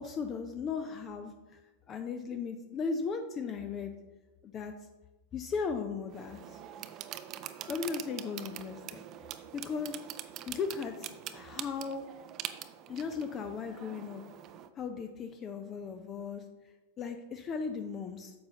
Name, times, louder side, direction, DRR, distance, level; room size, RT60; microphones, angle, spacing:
voice 1, 0.0-1.6 1.9-3.9 4.4-4.7 5.3-6.6 7.7-9.0 9.5-10.0 10.5-12.1 12.9-14.2 14.8-16.4 17.0-18.3, left 5 dB, 30° left, 7 dB, 0.5 m, -37 dB
sound 1, 6.1-14.7, right 11 dB, 35° right, 0.5 m, -44 dB
9.2 x 6.7 x 2.9 m, 1.2 s
figure-of-eight pair, 90°, 0 cm